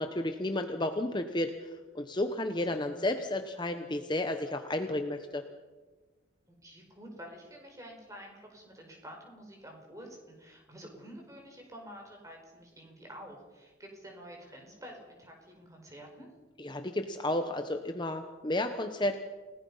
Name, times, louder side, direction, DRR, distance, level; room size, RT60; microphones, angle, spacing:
voice 1, 0.0-5.4 16.6-19.2, left 1 dB, 25° left, 6 dB, 1.0 m, -32 dB
voice 2, 6.5-16.3, equal, 15° right, 1 dB, 5.1 m, -49 dB
29.0 x 18.5 x 5.6 m, 1.3 s
head